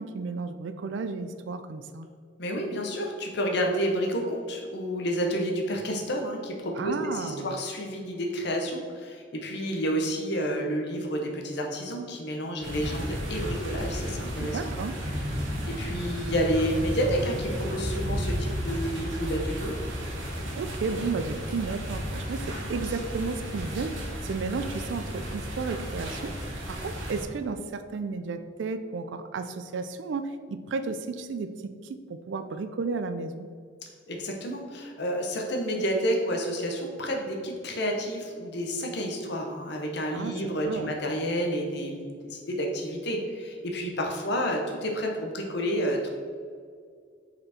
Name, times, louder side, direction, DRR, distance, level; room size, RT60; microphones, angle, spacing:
voice 1, 0.0-2.1 6.8-7.5 14.4-14.9 20.5-31.5 31.8-33.5 40.1-40.3 40.6-40.9, right 4 dB, 70° right, 9 dB, 0.4 m, -33 dB
voice 2, 2.4-14.6 15.7-19.7 34.1-46.1, equal, 60° left, 1 dB, 0.8 m, -30 dB
sound 1, 12.6-27.2, equal, 85° right, 1.4 m, -33 dB
5.3 x 4.4 x 4.1 m, 2.1 s
head